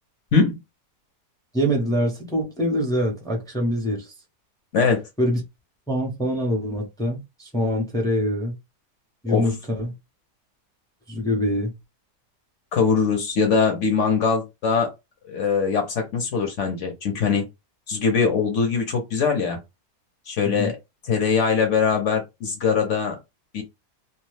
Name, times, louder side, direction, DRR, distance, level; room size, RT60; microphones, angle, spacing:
voice 1, 1.5-4.1 5.2-5.4 5.9-8.5 9.2-9.9 11.1-11.7 20.4-20.7, equal, 5° left, 0.3 m, -24 dB
voice 2, 12.7-14.9 15.3-17.4 17.9-19.6 20.3-20.8 21.1-23.2 23.5-23.6, left 5 dB, 55° left, 0.9 m, -22 dB
2.7 x 2.2 x 3.2 m
omnidirectional pair, 1.7 m